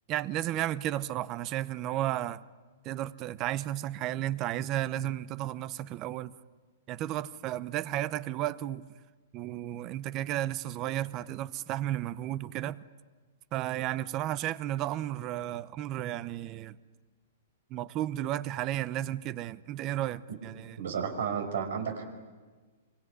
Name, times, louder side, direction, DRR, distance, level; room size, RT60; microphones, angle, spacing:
voice 1, 0.1-2.4 2.8-6.4 6.9-8.8 9.3-12.8 13.5-16.8 17.7-20.8, right 13 dB, 30° right, 19 dB, 0.7 m, -33 dB
voice 2, 20.8-22.1, right 7 dB, 75° right, 6 dB, 5.3 m, -32 dB
25.0 x 24.5 x 9.8 m, 1.4 s
hypercardioid pair, 155°, 0 cm